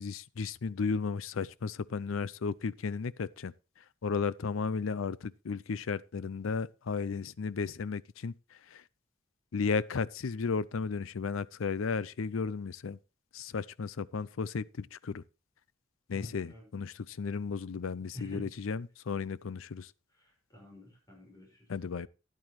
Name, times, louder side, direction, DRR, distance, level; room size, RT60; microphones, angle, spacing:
voice 1, 0.0-3.5 4.0-8.3 8.7-8.8 9.5-13.0 13.3-15.2 16.1-19.9 21.7-22.1, left 5 dB, 90° left, 0.5 m, -34 dB
voice 2, 16.1-16.7 18.1-18.5 20.2-21.7, equal, 20° left, 5.5 m, -49 dB
13.0 x 10.5 x 3.1 m
head